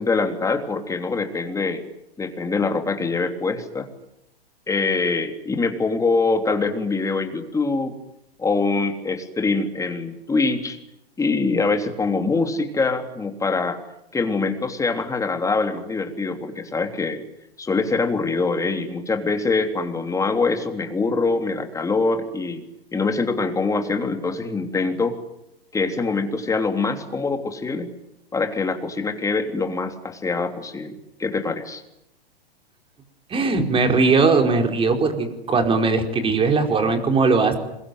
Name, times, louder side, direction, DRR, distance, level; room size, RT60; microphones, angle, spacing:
voice 1, 0.0-1.8 2.2-3.9 4.7-7.9 8.4-10.8 11.2-13.8 14.1-17.2 17.6-22.6 22.9-25.1 25.7-27.9 28.3-31.8, left 3 dB, 10° left, 5 dB, 3.3 m, -24 dB
voice 2, 33.3-37.6, right 4 dB, 15° right, 5 dB, 4.7 m, -19 dB
26.5 x 22.5 x 9.4 m, 0.85 s
hypercardioid pair, 120°, 30 cm